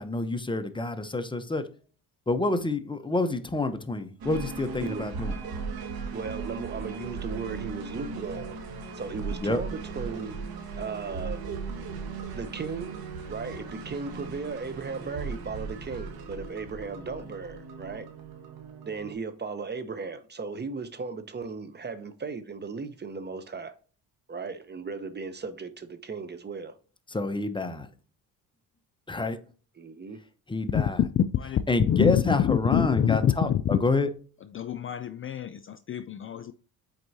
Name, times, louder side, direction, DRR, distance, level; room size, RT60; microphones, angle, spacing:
voice 1, 0.0-1.6 2.3-5.4 9.4-9.6 27.1-27.9 29.1-29.4 30.5-31.0 31.7-34.1, left 2 dB, 15° left, 0.8 m, -28 dB
sound 1, 4.2-19.1, right 4 dB, 65° right, 1.5 m, -37 dB
voice 2, 6.1-8.6 8.9-10.4 10.8-11.4 12.3-13.0 13.3-18.1 18.9-23.7 24.3-26.8 29.8-30.2, right 4 dB, 25° right, 0.7 m, -36 dB
voice 3, 31.1-31.6 31.9-33.8 34.5-36.5, left 9 dB, 35° left, 0.4 m, -26 dB
7.7 x 4.5 x 2.7 m
cardioid pair, 100°, 38 cm